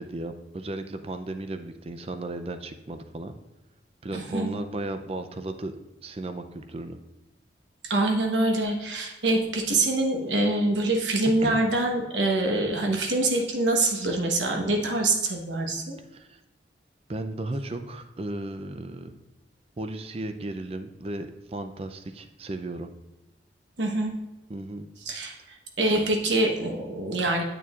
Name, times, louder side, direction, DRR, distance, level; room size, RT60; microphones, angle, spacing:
voice 1, 0.0-3.3 4.0-5.7 6.0-7.0 11.4-11.6 16.1-16.4 17.1-19.1 19.8-22.9 24.5-24.9, right 2 dB, 35° right, 8 dB, 0.5 m, -35 dB
voice 2, 4.1-4.5 7.8-16.0 23.8-24.1 25.1-27.4, right 2 dB, 80° right, 1 dB, 1.1 m, -25 dB
8.6 x 6.8 x 2.4 m, 1.0 s
head